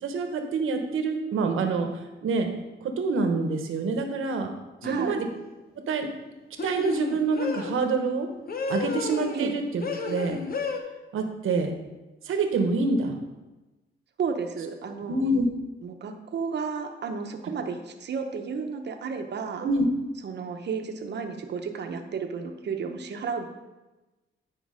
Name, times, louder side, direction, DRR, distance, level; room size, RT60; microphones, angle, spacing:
voice 1, 0.0-2.5 2.8-4.5 4.8-5.3 5.9-6.1 6.6-8.3 8.7-10.4 11.1-11.7 12.2-13.1 15.1-15.5 19.6-19.8, right 3 dB, 80° right, 5 dB, 1.2 m, -26 dB
sound 1, 4.8-5.1 6.6-7.8 8.5-9.5 9.8-10.8, left 4 dB, 45° left, 0.9 m, -32 dB
voice 2, 4.8-5.2 9.3-9.5 14.2-15.2 15.8-19.7 20.2-23.5, right 5 dB, 55° right, 5 dB, 1.0 m, -32 dB
9.6 x 4.9 x 5.0 m, 1.1 s
cardioid pair, 115°, 21 cm